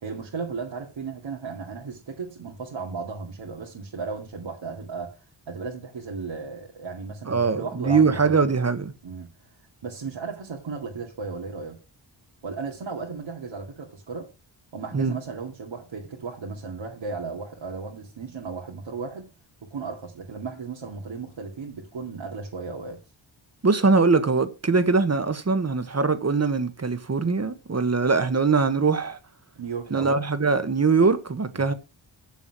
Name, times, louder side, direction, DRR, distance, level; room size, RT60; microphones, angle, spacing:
voice 1, 0.0-5.1 5.5-8.3 9.0-9.3 9.8-11.8 12.4-14.3 14.7-19.2 19.6-23.0 29.6-30.2 31.5-31.7, right 4 dB, 75° right, 2.4 m, -35 dB
voice 2, 7.3-8.9 14.9-15.1 23.6-29.2 29.9-31.7, right 4 dB, 35° right, 1.4 m, -22 dB
7.8 x 7.2 x 6.0 m
wide cardioid pair, 80°, 46 cm